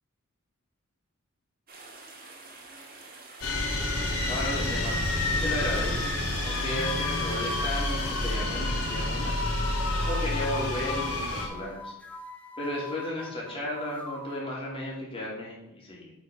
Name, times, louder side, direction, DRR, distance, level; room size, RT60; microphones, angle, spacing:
sound 1, 1.7-8.4, right 3 dB, 45° right, 2.0 m, -47 dB
sound 2, 3.4-11.5, left 2 dB, 85° left, 3.0 m, -29 dB
voice 1, 4.3-6.1 6.4-9.3 10.0-11.9 12.6-16.1, left 1 dB, 25° left, -4 dB, 3.3 m, -34 dB
sound 3, 6.3-14.5, left 2 dB, 5° left, 0.9 m, -44 dB
8.1 x 6.3 x 5.1 m, 0.88 s
head